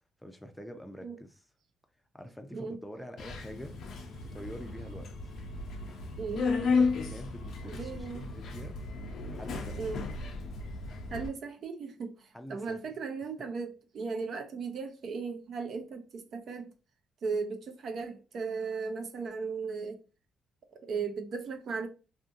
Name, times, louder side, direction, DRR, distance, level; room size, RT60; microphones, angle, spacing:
voice 1, 0.0-1.4 2.1-3.8 4.2-5.1 7.1-8.8 9.3-9.8 12.3-12.8, equal, 5° left, 0.5 m, -45 dB
Subway metro underground, 3.2-11.3, left 4 dB, 70° left, 0.5 m, -34 dB
voice 2, 6.2-6.5 7.7-8.3 9.8-10.0 11.1-16.7 17.2-20.0 20.8-21.9, right 5 dB, 60° right, 0.6 m, -37 dB
2.7 x 2.6 x 2.4 m
cardioid pair, 90°, 0 cm